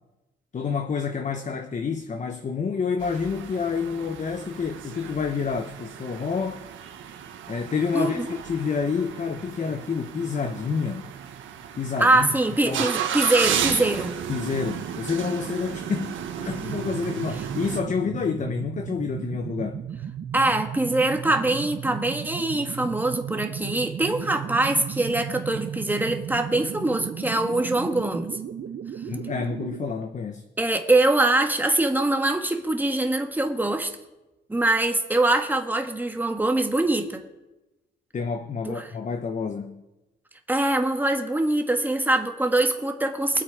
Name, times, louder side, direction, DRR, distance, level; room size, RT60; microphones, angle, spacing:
voice 1, 0.5-6.6 7.5-11.0 11.8-12.3 12.6-12.9 14.3-19.8 29.1-30.4 38.1-39.8, left 5 dB, 40° left, 1.0 m, -28 dB
sound 1, 3.0-17.8, right 8 dB, 80° right, 1.4 m, -33 dB
voice 2, 7.9-8.3 12.0-14.1 20.3-28.4 30.6-33.9 34.5-37.2 38.7-38.9 40.5-43.4, right 2 dB, 10° right, 1.7 m, -23 dB
sound 2, 16.6-29.9, right 8 dB, 55° right, 1.0 m, -35 dB
22.5 x 8.1 x 4.8 m
cardioid pair, 90°, 20 cm